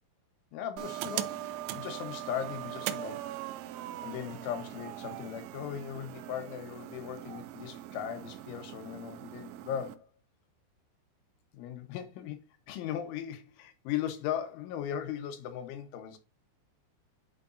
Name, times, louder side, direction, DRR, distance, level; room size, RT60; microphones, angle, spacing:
voice 1, 0.5-3.3 4.0-10.1 11.5-12.4 12.7-16.2, left 10 dB, 75° left, 3.3 m, -38 dB
sound 1, 0.8-9.9, right 13 dB, 80° right, 2.7 m, -40 dB
11.0 x 5.2 x 2.5 m
omnidirectional pair, 5.8 m